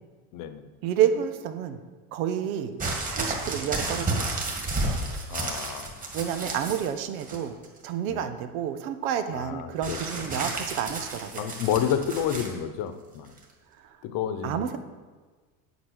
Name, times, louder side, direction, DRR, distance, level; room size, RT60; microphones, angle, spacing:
voice 1, 0.3-0.7 5.3-6.1 8.1-8.3 9.3-10.3 11.4-13.3 14.0-14.7, left 9 dB, 50° left, 10 dB, 1.0 m, -30 dB
voice 2, 0.8-1.8 2.1-2.7 3.1-4.3 6.1-7.6 7.8-11.5 13.8-13.9 14.4-14.8, right 9 dB, 90° right, 9 dB, 1.3 m, -29 dB
sound 1, 2.8-6.9 7.2-7.8 9.8-12.5 13.4-13.5, right 2 dB, 20° right, 2.1 m, -31 dB
8.8 x 8.4 x 6.4 m, 1.4 s
cardioid pair, 150°, 41 cm